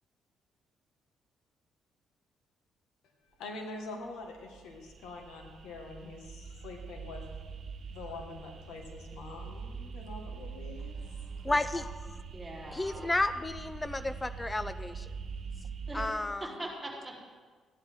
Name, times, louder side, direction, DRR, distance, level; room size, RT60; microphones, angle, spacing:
voice 1, 3.3-7.2 7.9-11.0, left 3 dB, 85° left, 3 dB, 1.8 m, -45 dB
sound 1, 4.1-16.1, right 5 dB, 55° right, 1.2 m, -43 dB
voice 2, 11.4-12.0 12.7-15.1 15.9-16.5, left 2 dB, 15° left, 13 dB, 0.5 m, -32 dB
voice 3, 12.3-13.0 15.9-16.1 16.4-17.1, right 1 dB, 5° right, -6 dB, 4.1 m, -41 dB
14.5 x 10.5 x 3.7 m, 1.5 s
cardioid pair, 90°, 0 cm